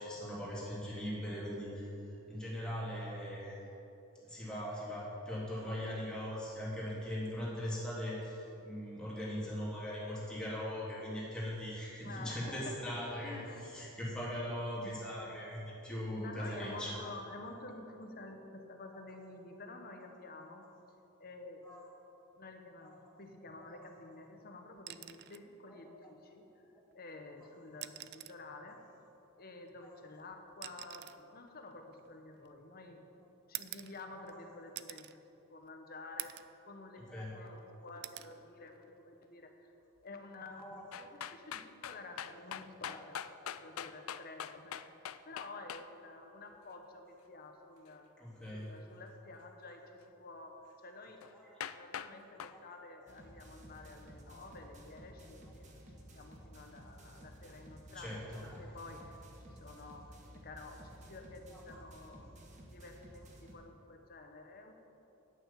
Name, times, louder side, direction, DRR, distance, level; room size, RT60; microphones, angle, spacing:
voice 1, 0.0-1.9 2.3-3.6 4.2-13.4 13.7-17.0 21.6-21.8 25.7-26.1 34.1-34.3 37.1-37.5 40.6-40.8 42.9-43.0 48.2-48.7 51.4-51.5 52.5-52.6 57.9-58.4, equal, 5° left, -7 dB, 3.1 m, -40 dB
voice 2, 12.0-14.0 14.8-14.9 16.2-20.7 21.2-21.7 22.4-28.9 29.4-33.1 33.5-35.2 35.5-39.7 40.0-48.1 48.5-51.2 51.7-55.7 56.1-58.2 58.6-64.7, left 2 dB, 45° left, 4 dB, 1.1 m, -50 dB
sound 1, 24.8-25.5 26.9-27.0 27.7-28.5 29.7-32.7 33.5-34.4 34.8-35.2 35.6-35.7 36.2-36.6 37.0-37.6 38.0-38.4 39.8-40.0, right 15 dB, 50° right, 0.4 m, -47 dB
sound 2, 40.9-45.8 51.2-51.3 51.6-52.1 52.4-52.6, left 9 dB, 75° left, 0.4 m, -42 dB
sound 3, 53.1-63.5, right 1 dB, 35° right, 1.4 m, -54 dB
9.7 x 8.6 x 7.5 m, 3.0 s
head